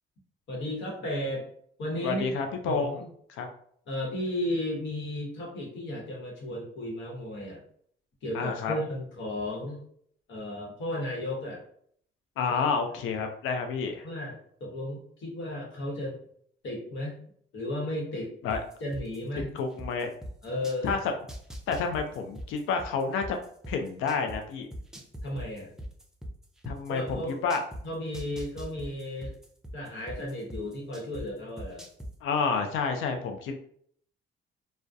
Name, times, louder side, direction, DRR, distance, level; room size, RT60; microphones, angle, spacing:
voice 1, 0.5-1.5 1.8-2.3 2.6-3.1 3.9-7.6 8.2-9.8 10.3-11.6 14.0-14.3 14.6-16.2 16.6-17.2 17.5-18.3 18.8-19.5 20.4-20.9 25.2-25.7 26.9-27.4 27.8-29.3 29.7-31.9, left 1 dB, 70° left, -2 dB, 1.0 m, -34 dB
voice 2, 2.0-3.0 3.3-3.5 8.3-8.7 12.4-14.1 18.4-18.6 19.5-20.1 20.8-21.0 21.7-23.4 23.7-24.7 26.7-27.6 32.2-33.6, left 5 dB, 85° left, 5 dB, 0.4 m, -29 dB
sound 1, 18.5-20.9 21.3-24.4 24.7-27.8 28.1-31.2 31.6-32.1, equal, 5° right, 0.4 m, -39 dB
2.2 x 2.1 x 2.6 m, 0.64 s
cardioid pair, 90°, 20 cm